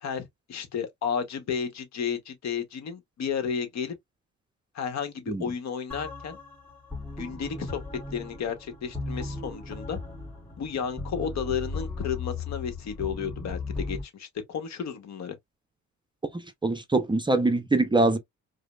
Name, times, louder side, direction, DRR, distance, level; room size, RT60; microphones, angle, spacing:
voice 1, 0.0-4.0 4.7-6.4 7.1-7.8 8.1-10.0 10.6-15.3, left 7 dB, 65° left, 1.0 m, -32 dB
sound 1, 5.9-14.0, left 3 dB, 5° left, 2.4 m, -37 dB
voice 2, 16.3-18.2, right 2 dB, 15° right, 0.5 m, -24 dB
4.9 x 2.0 x 2.2 m
cardioid pair, 90°, 30 cm